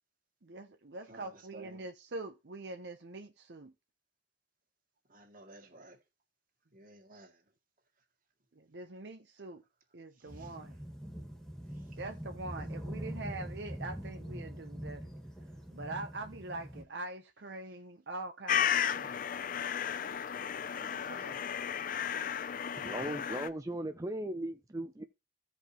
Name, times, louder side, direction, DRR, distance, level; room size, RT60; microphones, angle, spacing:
voice 1, 0.4-3.7 8.6-9.6 9.9-10.8 11.9-15.1 15.7-19.2 21.0-21.4, right 2 dB, 70° right, 0.8 m, -44 dB
voice 2, 1.1-1.8 5.1-6.0 6.7-7.4 10.1-10.6 11.7-12.0 20.8-21.4, right 1 dB, 50° right, 2.2 m, -55 dB
sound 1, 10.3-16.8, equal, 5° left, 1.7 m, -43 dB
sound 2, 18.5-23.5, left 8 dB, 50° left, 0.5 m, -34 dB
voice 3, 22.8-25.0, right 1 dB, 20° right, 0.5 m, -38 dB
16.0 x 5.3 x 3.0 m
head